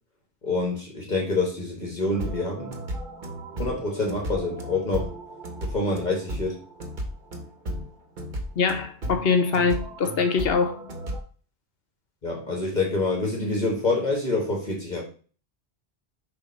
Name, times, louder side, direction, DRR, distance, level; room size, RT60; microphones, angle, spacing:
voice 1, 0.4-2.8 3.5-5.1 5.6-6.6 12.2-15.0, left 2 dB, 45° left, 1.4 m, -26 dB
sound 1, 2.1-11.2, right 1 dB, 55° right, 1.1 m, -35 dB
voice 2, 8.6-10.8, left 5 dB, 70° left, 1.0 m, -23 dB
6.8 x 2.7 x 5.3 m
omnidirectional pair, 1.0 m